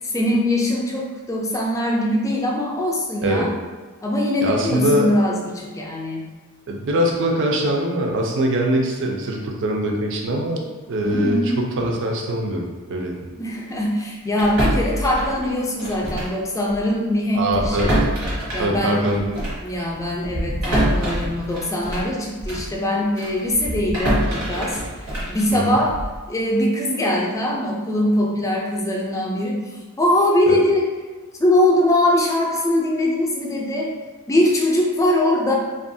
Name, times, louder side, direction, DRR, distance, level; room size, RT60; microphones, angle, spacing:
voice 1, 0.0-3.5 4.0-6.3 11.0-11.6 13.4-17.9 18.5-19.1 19.6-24.8 25.3-26.0 26.3-29.6 30.0-30.9 31.4-33.9 34.3-35.5, left 1 dB, 15° left, -2 dB, 0.3 m, -21 dB
voice 2, 4.4-5.1 6.7-10.6 10.9-13.1 17.3-18.1 18.6-19.4 19.8-19.9 25.5-25.8 30.5-30.6, right 1 dB, 55° right, 0 dB, 0.4 m, -22 dB
sound 1, 14.4-16.4 16.7-16.9 17.5-22.7 23.2-26.2, equal, 80° right, 1.0 m, -25 dB
2.8 x 2.3 x 2.6 m, 1.3 s
head